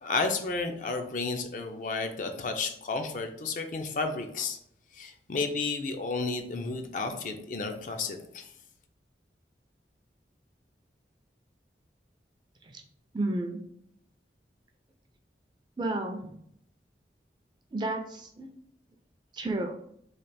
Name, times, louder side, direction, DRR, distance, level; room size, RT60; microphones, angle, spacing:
voice 1, 0.0-4.6 4.9-8.5, left 3 dB, 45° left, 5 dB, 0.4 m, -32 dB
voice 2, 13.1-13.6 15.8-16.4 17.7-18.5 19.3-19.8, right 2 dB, 25° right, 3 dB, 0.4 m, -32 dB
3.2 x 2.4 x 4.0 m, 0.71 s
head